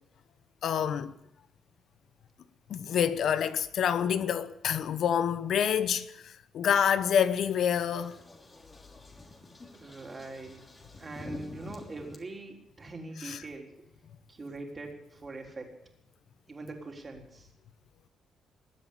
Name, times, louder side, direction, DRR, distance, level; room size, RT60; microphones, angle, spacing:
voice 1, 0.6-1.1 2.7-8.2 13.2-13.4, left 8 dB, 65° left, 0.8 m, -27 dB
sound 1, 7.5-12.2, left 2 dB, 25° left, 3.2 m, -48 dB
voice 2, 9.7-10.6 11.0-13.7 14.3-15.7 16.5-17.5, right 2 dB, 30° right, 3.9 m, -42 dB
21.0 x 7.9 x 8.5 m
cardioid pair, 90°, 0 cm